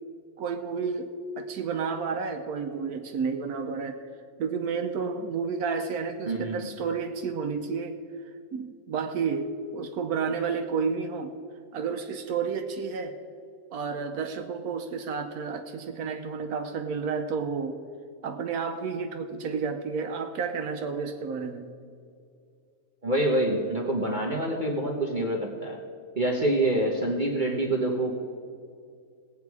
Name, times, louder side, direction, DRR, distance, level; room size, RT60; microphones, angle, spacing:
voice 1, 0.4-4.1 4.4-8.0 8.5-11.3 11.7-13.2 13.7-17.8 18.2-21.7, right 5 dB, 80° right, 6 dB, 1.2 m, -31 dB
voice 2, 6.3-6.7 23.0-25.8 26.2-28.1, right 1 dB, 35° right, -1 dB, 1.3 m, -26 dB
19.0 x 8.4 x 4.7 m, 2.3 s
omnidirectional pair, 1.6 m